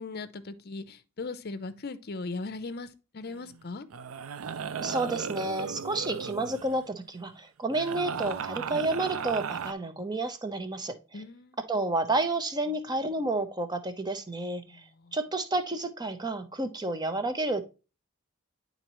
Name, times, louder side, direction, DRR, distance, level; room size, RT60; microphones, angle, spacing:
voice 1, 0.0-2.9 3.1-3.9 11.1-11.6 14.7-15.2, left 3 dB, 45° left, 0.6 m, -38 dB
sound 1, 3.3-3.5 3.9-6.8 7.7-9.7, right 6 dB, 70° right, 0.4 m, -36 dB
voice 2, 4.8-11.2 11.6-14.8 15.1-17.6, right 2 dB, 20° right, 0.7 m, -30 dB
10.0 x 3.9 x 3.0 m
head